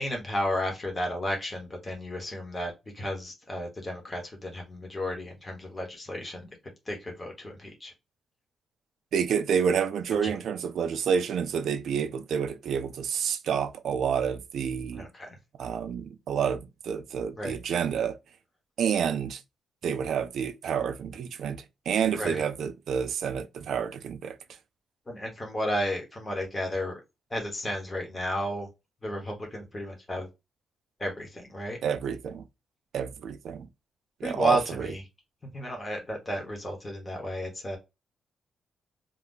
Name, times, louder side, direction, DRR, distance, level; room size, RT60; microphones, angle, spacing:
voice 1, 0.0-7.9 14.9-15.4 17.4-17.6 22.1-22.4 25.1-26.9 27.3-28.7 29.0-30.3 31.0-31.8 34.2-35.0 35.5-37.8, equal, 20° left, 0.9 m, -33 dB
voice 2, 9.1-15.1 15.6-18.2 18.8-19.4 19.8-24.4 31.8-32.4 32.9-33.7 34.2-34.9, right 7 dB, 70° right, 0.4 m, -29 dB
2.6 x 2.2 x 3.6 m
wide cardioid pair, 145°, 0 cm